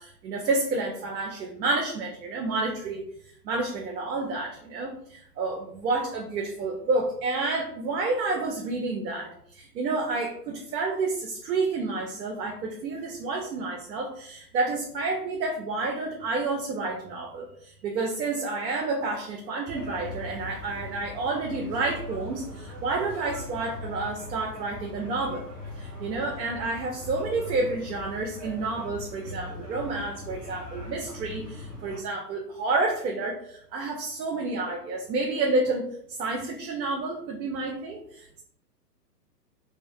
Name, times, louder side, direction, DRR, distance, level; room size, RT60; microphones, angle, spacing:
voice 1, 0.0-3.1 3.4-25.5 25.8-38.4, right 3 dB, 80° right, 1 dB, 0.6 m, -30 dB
sound 1, 19.7-32.0, left 2 dB, 15° right, 1.1 m, -40 dB
2.3 x 2.0 x 2.6 m, 0.68 s
hypercardioid pair, 145°, 50 cm